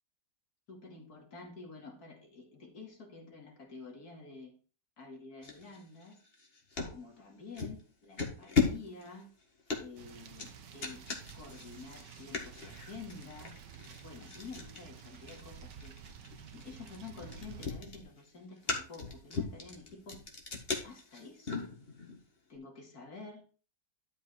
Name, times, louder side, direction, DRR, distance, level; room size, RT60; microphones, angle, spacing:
voice 1, 0.7-4.5 5.0-6.2 6.8-9.3 9.8-11.0 11.3-13.5 14.0-15.9 16.5-20.2 20.8-21.6 22.5-23.4, left 4 dB, 60° left, 1 dB, 2.9 m, -49 dB
sound 1, 5.4-7.0 7.6-7.8 8.2-22.2, left 4 dB, 35° left, 2.0 m, -37 dB
sound 2, 10.0-17.7, right 8 dB, 75° right, 1.7 m, -51 dB
12.0 x 5.2 x 4.6 m, 0.37 s
omnidirectional pair, 1.9 m